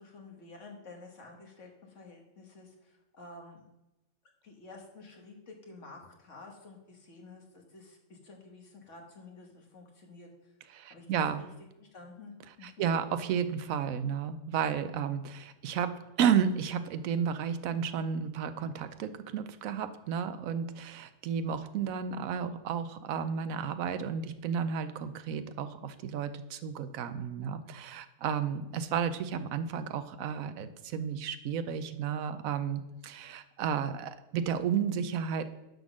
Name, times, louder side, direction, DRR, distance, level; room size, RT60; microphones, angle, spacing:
voice 1, 0.0-3.6 4.4-10.5 10.9-11.1 11.4-11.5 11.8-12.9, left 3 dB, 65° left, 1 dB, 1.7 m, -51 dB
voice 2, 10.7-11.4 12.6-15.9 16.2-35.4, right 7 dB, 85° right, 11 dB, 1.1 m, -32 dB
10.5 x 3.9 x 6.2 m, 0.96 s
omnidirectional pair, 1.4 m